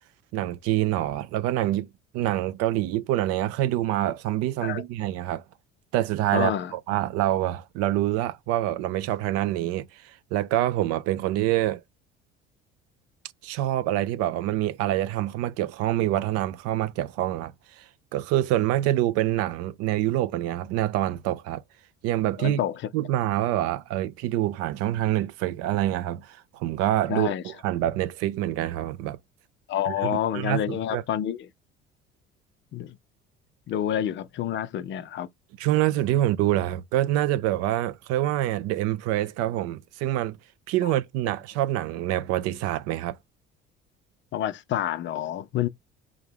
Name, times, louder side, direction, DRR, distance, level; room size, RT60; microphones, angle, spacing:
voice 1, 0.3-1.9 2.1-5.4 5.9-11.8 13.4-21.6 22.0-22.6 22.9-29.2 29.9-31.0 35.6-40.4 40.7-43.2, right 14 dB, 50° right, 0.4 m, -26 dB
voice 2, 6.3-6.7 22.4-22.8 27.1-27.4 29.7-31.5 32.7-33.0 33.7-35.3 40.8-40.9 44.3-45.7, left 10 dB, 35° left, 0.5 m, -28 dB
3.6 x 2.7 x 3.6 m
figure-of-eight pair, 55°, 33 cm